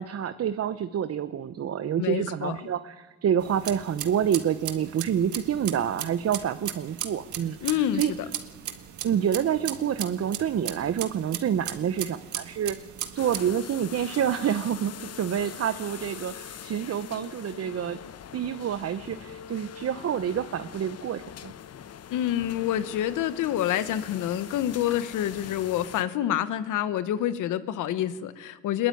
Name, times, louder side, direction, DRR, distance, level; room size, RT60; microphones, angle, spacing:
voice 1, 0.0-8.1 9.0-12.8 13.1-18.0 18.3-21.5, right 9 dB, 55° right, 12 dB, 0.9 m, -28 dB
voice 2, 2.0-2.5 7.6-8.1 22.1-28.9, left 11 dB, 85° left, 13 dB, 1.3 m, -27 dB
sound 1, 3.4-13.5, right 10 dB, 75° right, 1.8 m, -37 dB
sound 2, 13.2-26.0, left 8 dB, 55° left, 1.1 m, -43 dB
22.5 x 21.5 x 9.3 m, 1.3 s
cardioid pair, 90°, 30 cm